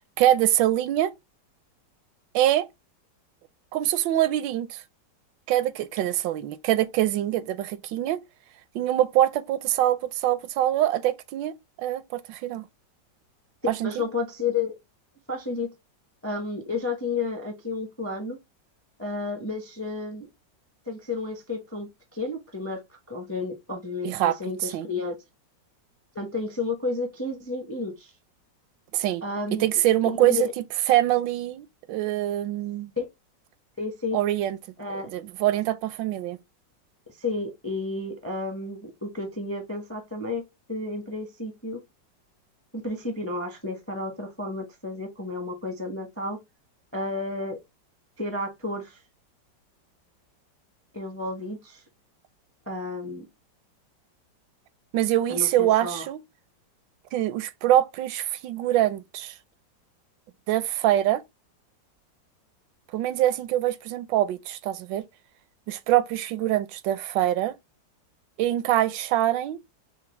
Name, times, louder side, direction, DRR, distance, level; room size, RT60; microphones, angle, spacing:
voice 1, 0.2-1.1 2.3-2.7 3.7-4.8 5.5-8.2 8.7-12.7 13.7-13.9 24.0-24.9 28.9-29.2 29.5-30.5 30.9-32.9 34.1-34.6 35.0-36.4 54.9-56.2 57.1-59.3 60.5-61.2 62.9-65.0 65.7-67.5 68.4-69.6, right 13 dB, 85° right, 1.3 m, -24 dB
voice 2, 13.8-14.7 15.3-15.7 16.2-18.4 19.0-20.3 20.9-25.1 26.1-28.1 29.2-29.6 30.0-30.5 33.0-33.1 33.8-34.2 34.8-35.1 37.2-41.8 42.7-46.4 46.9-47.6 48.2-49.0 50.9-51.8 52.7-53.2 55.3-56.0, left 3 dB, 15° left, 0.5 m, -31 dB
5.8 x 2.3 x 3.2 m
omnidirectional pair, 2.0 m